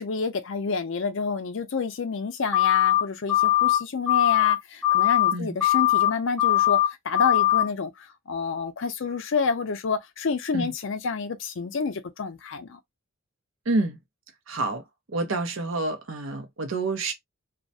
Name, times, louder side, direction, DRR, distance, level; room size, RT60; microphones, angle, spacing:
voice 1, 0.0-12.8, left 4 dB, 60° left, 0.5 m, -29 dB
sound 1, 2.5-3.0 3.3-3.8 4.1-4.5 4.8-5.3 5.6-6.1 6.4-6.9 7.1-7.6, left 14 dB, ahead, 0.5 m, -20 dB
voice 2, 13.7-14.0 14.5-14.8 15.1-17.1, right 2 dB, 65° right, 0.7 m, -28 dB
2.3 x 2.1 x 2.6 m
head